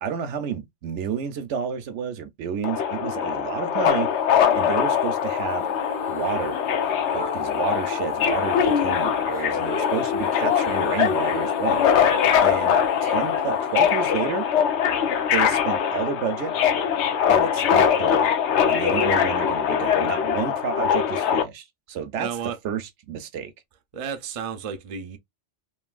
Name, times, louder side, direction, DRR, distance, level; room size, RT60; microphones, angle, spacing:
voice 1, 0.0-4.1 4.5-5.7 6.1-6.6 7.1-11.9 12.4-14.5 15.3-16.5 17.3-18.3 18.7-23.5, right 7 dB, 75° right, 0.9 m, -30 dB
Subway metro underground, 2.6-21.4, left 8 dB, 70° left, 0.9 m, -22 dB
sound 1, 4.2-15.2, left 3 dB, 25° left, 0.8 m, -38 dB
voice 2, 22.2-22.6 23.9-25.2, right 7 dB, 45° right, 0.4 m, -33 dB
3.1 x 2.7 x 2.3 m
omnidirectional pair, 1.2 m